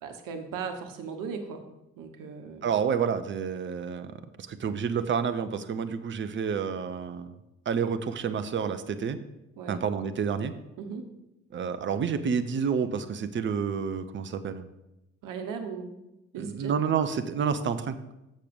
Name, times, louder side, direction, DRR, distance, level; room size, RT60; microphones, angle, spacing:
voice 1, 0.0-1.6 2.0-2.7 9.6-9.8 10.8-11.0 15.2-15.9 16.3-16.7, right 5 dB, 60° right, 6 dB, 1.2 m, -37 dB
voice 2, 2.6-4.1 4.4-7.3 7.7-9.2 9.7-10.5 11.5-14.7 16.4-18.0, right 6 dB, 30° right, 10 dB, 0.7 m, -29 dB
6.6 x 6.4 x 5.4 m, 0.92 s
figure-of-eight pair, 50°, 37 cm